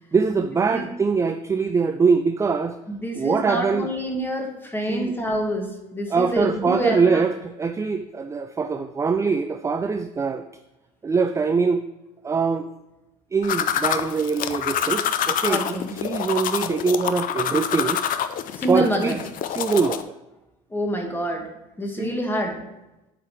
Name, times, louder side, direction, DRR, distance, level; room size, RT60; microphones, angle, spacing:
voice 1, 0.1-2.8 3.2-3.9 4.9-5.1 6.1-10.4 11.0-11.8 12.2-12.7 13.3-18.0 18.7-19.2 19.5-20.1 22.0-22.2, right 5 dB, 15° right, 8 dB, 0.4 m, -23 dB
voice 2, 2.9-7.3 15.5-16.0 18.5-19.2 20.7-21.5 21.8-22.6, equal, 10° left, 2 dB, 1.6 m, -27 dB
sound 1, 13.4-20.0, left 9 dB, 50° left, 0.5 m, -27 dB
7.9 x 3.8 x 4.7 m, 0.97 s
hypercardioid pair, 65°, 18 cm